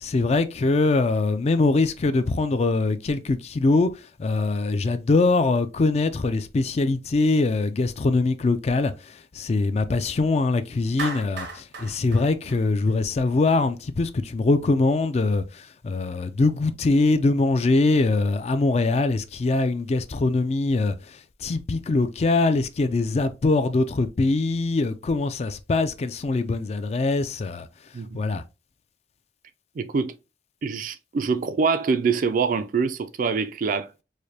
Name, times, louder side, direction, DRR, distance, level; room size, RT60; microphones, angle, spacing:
voice 1, 0.0-3.9 4.2-27.7 28.1-28.4, left 3 dB, 35° left, 0.3 m, -23 dB
Clapping, 11.0-13.3, right 4 dB, 80° right, 0.7 m, -35 dB
voice 2, 29.8-30.1 30.6-33.9, right 5 dB, 50° right, 0.3 m, -25 dB
4.8 x 2.1 x 2.7 m
head